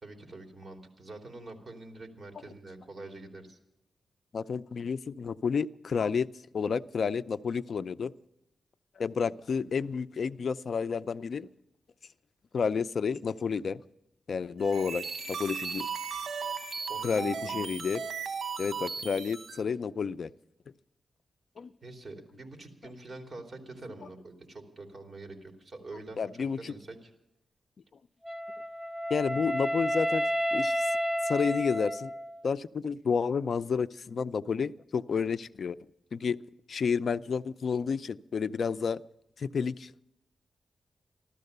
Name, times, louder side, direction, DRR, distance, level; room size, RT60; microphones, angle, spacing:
voice 1, 0.0-3.6 16.9-17.7 21.8-27.1 29.3-29.4, right 2 dB, 35° right, 3 dB, 3.2 m, -46 dB
voice 2, 4.3-6.3 6.5-8.1 9.0-11.5 12.5-13.8 14.3-15.9 17.0-18.0 18.6-20.3 21.6-21.7 26.2-26.7 29.1-30.2 30.5-31.0 31.2-32.1 32.4-35.8 36.1-36.4 36.7-39.0 39.4-40.0, left 6 dB, 65° left, 15 dB, 0.5 m, -30 dB
sound 1, 14.6-19.6, right 6 dB, 70° right, 1.4 m, -36 dB
Wind instrument woodwind instrument, 28.3-32.4, equal, 15° right, 0.6 m, -31 dB
14.5 x 13.0 x 6.6 m, 0.82 s
cardioid pair, 85°, 0 cm